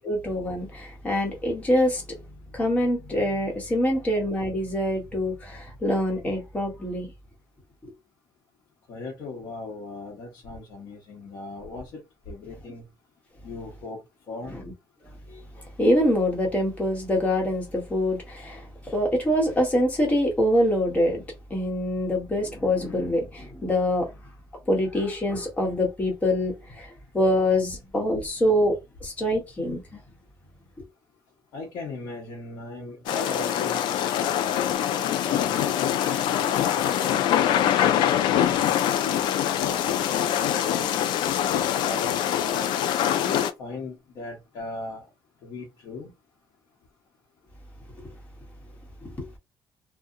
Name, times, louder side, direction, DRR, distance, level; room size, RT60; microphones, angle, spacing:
voice 1, 0.1-2.0 2.5-7.1 7.8-7.9 14.5-14.6 15.3-15.4 15.8-21.2 21.5-24.1 24.7-28.8 29.0-30.0 49.0-49.3, left 1 dB, 20° left, 0.9 m, -25 dB
voice 2, 3.8-4.1 8.9-12.8 13.4-14.6 31.5-35.7 36.2-38.7 39.3-41.1 41.8-42.7 43.1-45.1 45.4-46.1, left 3 dB, 60° left, 0.7 m, -38 dB
sound 1, 33.1-43.5, left 10 dB, 75° left, 0.4 m, -24 dB
2.7 x 2.0 x 2.4 m
cardioid pair, 165°, 8 cm